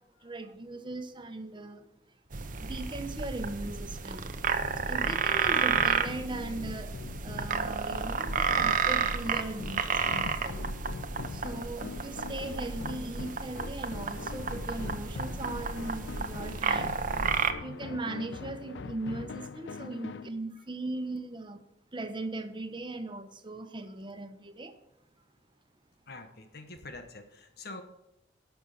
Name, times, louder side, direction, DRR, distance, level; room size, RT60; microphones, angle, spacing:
voice 1, 0.2-1.8 2.6-4.3 4.9-6.9 7.2-10.6 11.3-16.9 17.6-21.6 21.9-24.7, right 2 dB, 30° right, 8 dB, 1.1 m, -38 dB
sound 1, 2.3-17.5, right 5 dB, 50° right, 0.8 m, -31 dB
sound 2, 4.6-20.3, left 4 dB, 85° left, 0.5 m, -43 dB
voice 2, 26.1-27.8, left 2 dB, 65° left, 6 dB, 1.1 m, -46 dB
11.5 x 6.2 x 7.3 m, 0.87 s
head